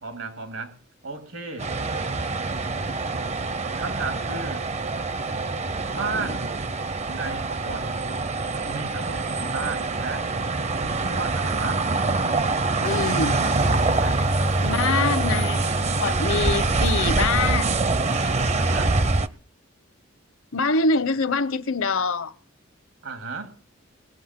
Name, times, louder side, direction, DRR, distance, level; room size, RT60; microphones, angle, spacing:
voice 1, 0.0-0.8 1.0-1.7 3.7-4.7 5.9-6.5 7.1-7.9 8.7-10.3 10.8-11.9 14.0-14.2 14.7-15.2 18.6-19.0 23.0-23.5, right 4 dB, 75° right, 2.7 m, -34 dB
sound 1, 1.6-19.3, right 3 dB, 35° right, 0.6 m, -25 dB
voice 2, 12.8-13.4 14.6-15.6 16.0-17.7 20.5-22.3, left 3 dB, 75° left, 0.8 m, -24 dB
sound 2, 12.8-19.2, equal, 55° right, 1.3 m, -31 dB
20.0 x 8.3 x 7.5 m
head